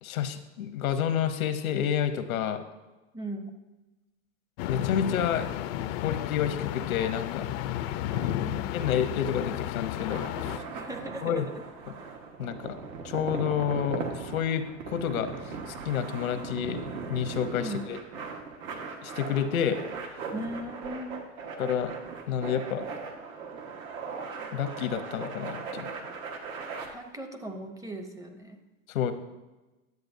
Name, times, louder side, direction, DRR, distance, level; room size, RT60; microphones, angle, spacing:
voice 1, 0.0-2.6 4.7-5.5 6.0-7.5 8.7-10.6 11.2-11.5 11.9-12.0 12.4-12.8 13.0-16.8 17.1-18.0 19.0-19.8 21.6-21.9 22.3-22.8 24.5-25.9 28.9-29.1, left 8 dB, 80° left, 9 dB, 0.9 m, -29 dB
voice 2, 3.1-3.5 8.1-8.7 10.7-11.4 17.6-17.9 20.3-21.3 26.9-28.6, right 1 dB, 10° right, 5 dB, 0.6 m, -38 dB
sound 1, 4.6-10.6, left 13 dB, 50° left, 0.4 m, -32 dB
sound 2, 9.8-26.9, right 5 dB, 75° right, 1.5 m, -38 dB
10.5 x 7.8 x 2.6 m, 1.1 s
hypercardioid pair, 110°, 41 cm